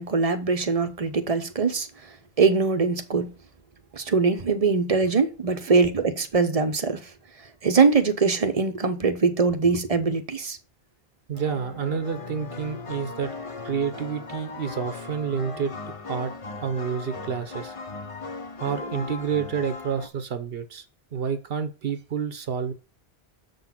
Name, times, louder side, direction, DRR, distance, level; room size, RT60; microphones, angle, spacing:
voice 1, 0.0-1.9 2.4-3.3 3.9-7.1 7.6-10.6, right 4 dB, 40° right, 0.8 m, -22 dB
sound 1, 11.3-20.1, left 3 dB, 35° left, 0.7 m, -38 dB
voice 2, 11.3-13.3 13.6-15.7 16.1-16.3 16.6-17.8 18.6-20.8 21.1-22.7, right 7 dB, 70° right, 1.0 m, -29 dB
7.0 x 4.0 x 5.8 m
omnidirectional pair, 1.0 m